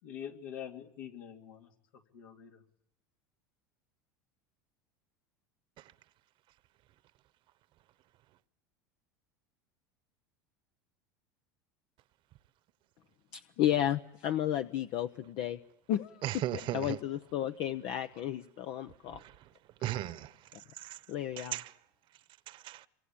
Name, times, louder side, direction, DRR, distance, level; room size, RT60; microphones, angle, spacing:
voice 1, 0.0-2.6, left 9 dB, 75° left, 3.0 m, -45 dB
voice 2, 13.3-15.6 15.9-16.2 16.7-19.2 21.1-21.6, left 11 dB, 60° left, 1.0 m, -32 dB
voice 3, 16.2-17.0 19.2-19.3 19.8-20.3 20.8-21.0 21.4-21.7 22.5-22.8, right 14 dB, 55° right, 1.2 m, -36 dB
27.0 x 23.5 x 8.7 m
hypercardioid pair, 90°, 10 cm